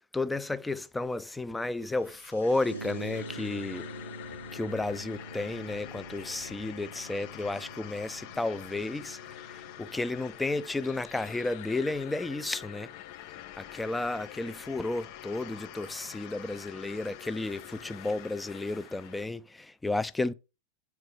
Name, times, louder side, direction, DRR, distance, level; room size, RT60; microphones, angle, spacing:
voice 1, 0.1-3.9 4.5-12.9 13.6-20.3, left 2 dB, 5° left, 0.5 m, -32 dB
sound 1, 1.5-6.9, left 3 dB, 80° left, 1.6 m, -61 dB
sound 2, 2.3-19.2, left 12 dB, 45° left, 0.7 m, -46 dB
sound 3, 2.6-10.4, right 2 dB, 80° right, 0.5 m, -45 dB
8.2 x 4.7 x 4.6 m
figure-of-eight pair, 90°, 0 cm